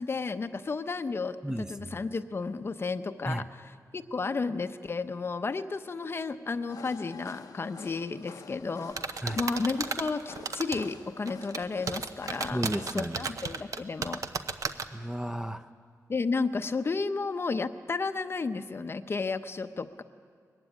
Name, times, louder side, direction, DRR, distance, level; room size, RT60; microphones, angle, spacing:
voice 1, 0.0-12.6 12.9-14.2 16.1-20.0, left 4 dB, 40° left, 10 dB, 0.7 m, -32 dB
voice 2, 1.4-2.0 3.3-3.4 9.2-9.4 12.5-13.3 14.9-15.7, right 1 dB, 10° right, 9 dB, 0.6 m, -33 dB
sound 1, 6.7-12.9, left 6 dB, 80° left, 0.8 m, -48 dB
sound 2, 9.0-10.9 11.3-14.8, right 5 dB, 60° right, 0.9 m, -33 dB
20.5 x 15.5 x 9.8 m, 2.1 s
wide cardioid pair, 120°, 6 cm